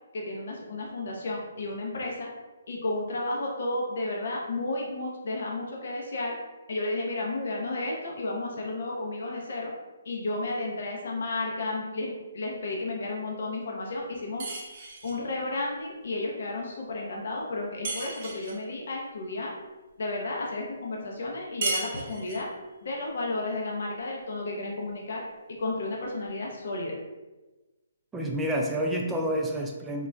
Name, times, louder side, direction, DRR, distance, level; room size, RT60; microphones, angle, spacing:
voice 1, 0.1-2.3 2.7-6.3 6.7-9.7 10.1-14.5 15.0-19.5 20.0-22.5 22.8-27.0, left 2 dB, 65° left, -1 dB, 0.7 m, -32 dB
sound 1, 14.4-15.2 17.8-18.6 21.6-22.5, right 3 dB, 45° right, 0.6 m, -34 dB
voice 2, 28.1-30.1, equal, 10° right, 0 dB, 0.3 m, -28 dB
3.8 x 2.0 x 2.3 m, 1.1 s
hypercardioid pair, 150°, 0 cm